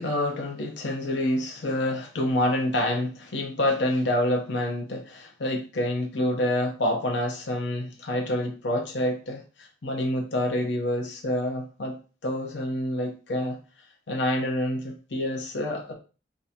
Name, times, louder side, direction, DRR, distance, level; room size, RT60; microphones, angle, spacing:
voice 1, 0.0-12.0 12.2-13.6 14.1-15.9, left 1 dB, 90° left, 2 dB, 0.7 m, -27 dB
3.6 x 2.6 x 2.8 m, 0.35 s
head